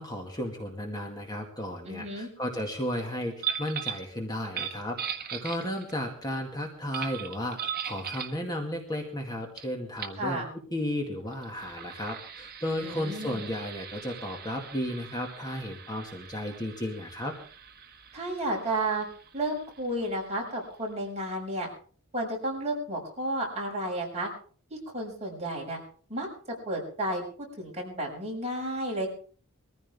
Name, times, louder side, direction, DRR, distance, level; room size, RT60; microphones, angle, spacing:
voice 1, 0.0-5.0 5.3-10.4 10.7-17.4, left 1 dB, 20° left, 1 dB, 2.1 m, -34 dB
voice 2, 1.8-2.3 10.2-10.5 12.8-13.4 18.1-19.1 19.3-21.7 22.1-24.3 24.7-25.8 26.1-26.3 26.6-27.2 27.6-29.1, right 1 dB, 30° right, -1 dB, 6.5 m, -32 dB
sound 1, 3.4-4.1 4.5-6.0 6.9-8.4 9.6-9.7 10.0-10.2 11.3-20.6, right 8 dB, 45° right, 1.6 m, -39 dB
22.5 x 15.0 x 3.6 m, 0.43 s
head